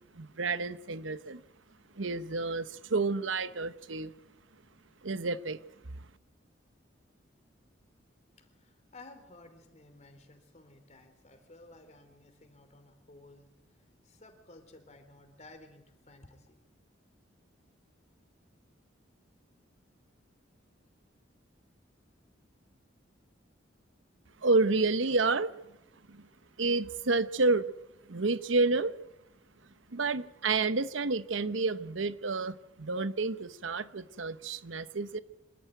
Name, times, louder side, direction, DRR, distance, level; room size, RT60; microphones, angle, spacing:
voice 1, 0.1-1.4 2.0-4.1 5.0-5.6 24.4-25.5 26.1-26.2 26.6-27.7 28.1-28.9 29.9-35.2, right 3 dB, 85° right, 14 dB, 1.0 m, -29 dB
voice 2, 8.4-16.6, left 2 dB, 40° left, 7 dB, 3.6 m, -55 dB
26.0 x 14.0 x 9.3 m, 0.97 s
head